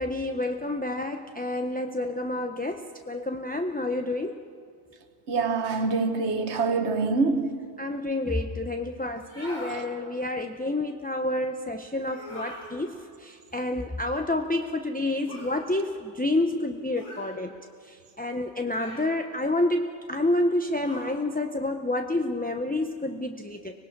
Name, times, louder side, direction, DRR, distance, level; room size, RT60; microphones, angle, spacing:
voice 1, 0.0-4.4 7.8-17.5 17.8-23.7, left 2 dB, 10° left, 0.5 m, -29 dB
voice 2, 5.3-7.6, right 4 dB, 85° right, 1.4 m, -25 dB
sound 1, 9.2-9.8 12.0-12.7 15.2-15.6 16.9-17.3 18.7-19.2 20.8-21.1, left 1 dB, 65° left, 6.5 m, -42 dB
25.0 x 19.5 x 5.9 m
omnidirectional pair, 1.1 m